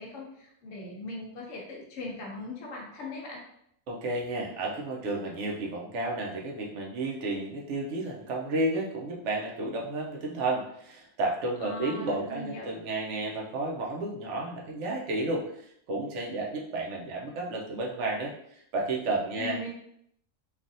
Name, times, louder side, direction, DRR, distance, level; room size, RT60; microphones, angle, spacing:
voice 1, 0.0-3.4 11.6-12.7 19.4-19.7, left 2 dB, 70° left, -3 dB, 0.9 m, -39 dB
voice 2, 3.9-18.3 18.7-19.7, right 2 dB, 65° right, -1 dB, 0.9 m, -32 dB
3.3 x 2.4 x 2.6 m, 0.72 s
omnidirectional pair, 1.4 m